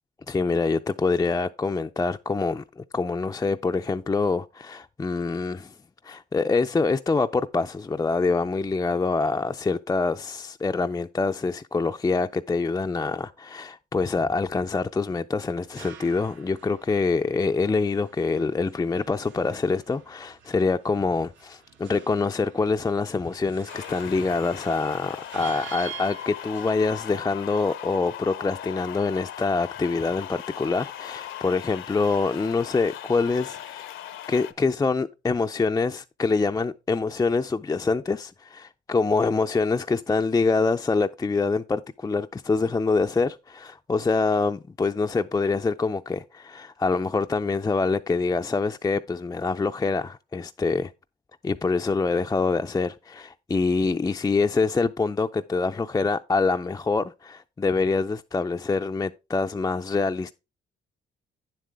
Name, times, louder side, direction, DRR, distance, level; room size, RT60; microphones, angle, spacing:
voice 1, 0.3-5.7 6.0-33.9 34.3-50.9 51.4-60.3, left 4 dB, 15° left, 0.4 m, -25 dB
sound 1, 15.4-26.7, right 9 dB, 75° right, 1.0 m, -47 dB
sound 2, 23.7-34.5, left 11 dB, 80° left, 0.8 m, -39 dB
9.3 x 7.5 x 3.4 m
cardioid pair, 90°, 20 cm